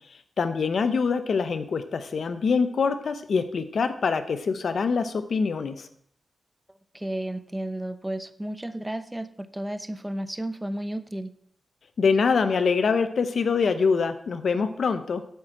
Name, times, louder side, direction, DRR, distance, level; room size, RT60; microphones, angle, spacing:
voice 1, 0.4-5.9 12.0-15.2, left 5 dB, 70° left, 9 dB, 0.9 m, -24 dB
voice 2, 6.9-11.3, right 1 dB, 10° right, 12 dB, 0.8 m, -33 dB
8.6 x 7.2 x 7.8 m, 0.65 s
cardioid pair, 75°, 0 cm